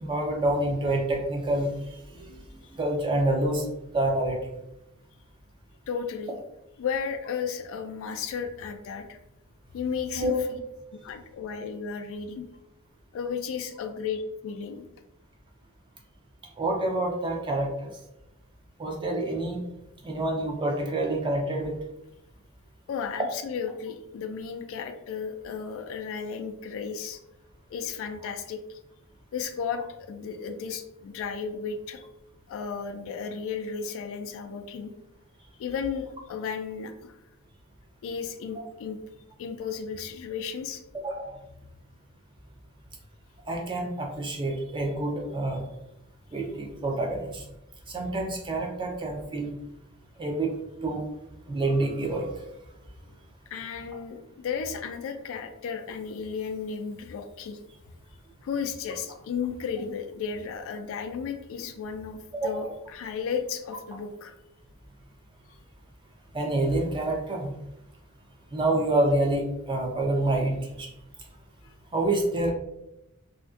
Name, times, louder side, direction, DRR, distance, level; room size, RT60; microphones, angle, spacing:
voice 1, 0.0-1.7 2.1-2.4 2.7-3.7 3.9-4.5 10.1-10.4 16.6-17.9 18.8-19.6 20.0-21.7 40.9-41.3 43.5-45.6 46.3-47.4 47.9-49.5 50.2-50.6 50.8-51.0 51.5-52.3 62.3-62.7 66.3-67.5 68.5-70.9 71.9-72.5, right 1 dB, 20° right, 1 dB, 0.4 m, -27 dB
voice 2, 5.9-6.4 6.8-9.2 9.7-10.6 11.0-12.5 13.1-14.8 22.9-27.2 27.7-28.8 29.3-32.1 32.5-34.9 35.6-37.1 38.0-39.0 39.4-40.8 53.5-57.6 58.4-64.3 71.6-71.7, left 6 dB, 65° left, 7 dB, 0.3 m, -34 dB
2.5 x 2.2 x 2.3 m, 0.86 s
head